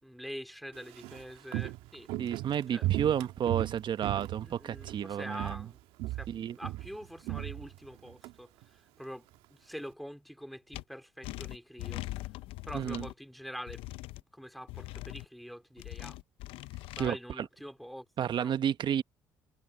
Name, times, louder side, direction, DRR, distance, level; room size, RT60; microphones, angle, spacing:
voice 1, 0.0-2.1 2.7-3.1 4.4-12.0 12.6-13.8 14.3-16.2 17.0-18.1 18.3-18.5, equal, ahead, 4.2 m, -45 dB
Walk footsteps, 0.7-5.1 5.3-5.7 6.0-8.3 8.6-8.7, right 17 dB, 80° right, 1.7 m, -36 dB
voice 2, 2.2-5.5 6.3-6.5 12.7-13.1 17.0-17.2 18.2-19.0, right 9 dB, 55° right, 1.3 m, -31 dB
sound 1, 10.7-10.8 11.2-13.1 13.7-14.2 14.7-15.3 15.8-17.1, left 19 dB, 80° left, 0.6 m, -41 dB
supercardioid pair, 65°, 9 cm